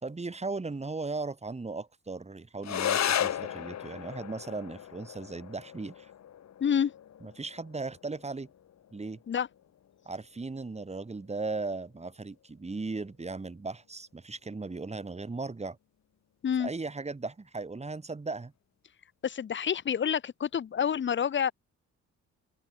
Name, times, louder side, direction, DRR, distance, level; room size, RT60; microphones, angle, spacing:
voice 1, 0.0-6.1 7.2-8.5 8.9-9.2 10.1-15.8 16.6-18.5, right 3 dB, 20° right, 4.2 m, -37 dB
sound 1, 2.6-11.6, left 10 dB, 60° left, 3.5 m, -36 dB
voice 2, 6.6-6.9 9.3-9.5 16.4-16.7 19.2-21.5, left 8 dB, 40° left, 1.0 m, -28 dB
open air
cardioid pair, 90°, 30 cm